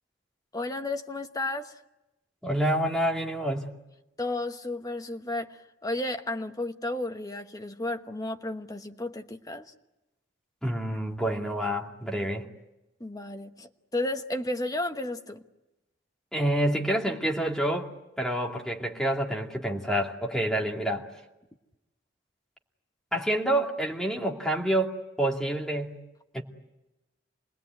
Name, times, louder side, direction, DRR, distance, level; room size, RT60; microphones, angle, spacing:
voice 1, 0.5-1.8 4.2-9.7 13.0-15.4, left 2 dB, 20° left, 6 dB, 1.1 m, -33 dB
voice 2, 2.4-3.8 10.6-12.4 16.3-17.9 18.2-21.1 23.1-24.9 25.2-25.9 26.3-26.4, right 1 dB, 5° left, 0 dB, 2.4 m, -28 dB
27.5 x 20.0 x 9.3 m, 0.99 s
head